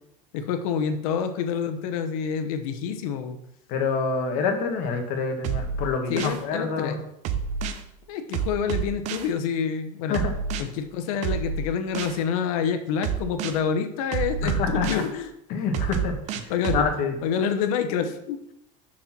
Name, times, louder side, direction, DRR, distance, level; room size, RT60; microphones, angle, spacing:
voice 1, 0.3-3.4 6.1-7.0 8.1-10.2 10.6-15.3 16.5-16.8 17.2-18.4, left 7 dB, 70° left, 8 dB, 0.9 m, -27 dB
voice 2, 3.7-7.0 10.1-10.4 14.4-15.0 15.5-16.2 16.7-17.1, left 5 dB, 45° left, 5 dB, 1.2 m, -26 dB
sound 1, 5.4-6.4 7.2-7.8 8.3-9.3 10.1-10.6 11.2-12.2 13.0-13.6 14.1-15.1 15.7-16.9, right 7 dB, 40° right, 0.6 m, -28 dB
6.4 x 4.3 x 5.9 m, 0.78 s
cardioid pair, 165°, 18 cm